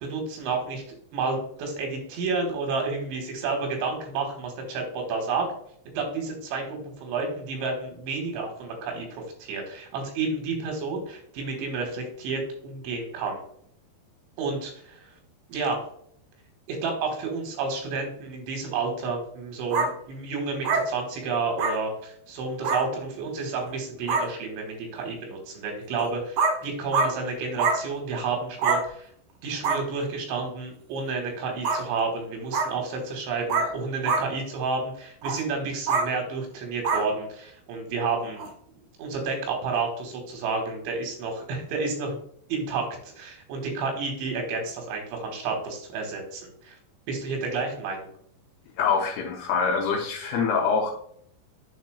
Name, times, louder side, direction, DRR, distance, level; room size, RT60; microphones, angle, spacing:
voice 1, 0.0-0.8 1.1-5.5 6.0-13.4 14.4-15.1 15.5-15.8 16.7-29.1 29.4-38.5 39.0-42.2 42.5-46.8 47.1-48.1, right 4 dB, 90° right, 3 dB, 3.6 m, -30 dB
sound 1, 19.7-19.9 20.6-20.8 21.6-21.7 22.6-22.8 23.7-23.8 24.1-24.3 25.9-26.0 26.4-26.5 26.9-27.1 27.6-27.8 28.6-28.8 29.6-29.8 31.6-31.8 32.5-32.7 33.5-33.7 34.1-34.2 35.2-35.4 35.9-36.1 36.8-37.0 38.4-38.5, right 4 dB, 70° right, 2.0 m, -24 dB
voice 2, 48.8-50.9, left 5 dB, 80° left, 1 dB, 2.4 m, -25 dB
11.0 x 4.1 x 2.2 m, 0.65 s
omnidirectional pair, 5.1 m